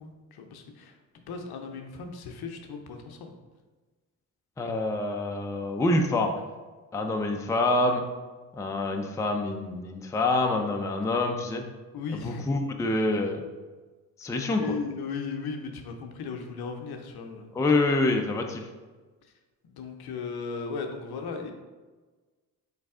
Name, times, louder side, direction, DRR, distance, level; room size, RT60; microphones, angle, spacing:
voice 1, 0.0-3.3 11.9-12.5 14.6-17.5 19.6-21.5, left 5 dB, 60° left, 4 dB, 0.7 m, -36 dB
voice 2, 4.6-6.3 6.9-8.0 8.6-11.6 12.1-13.4 14.2-14.7 17.5-18.6, left 2 dB, 5° left, 3 dB, 0.4 m, -26 dB
4.0 x 3.2 x 3.6 m, 1.3 s
hypercardioid pair, 45°, 44 cm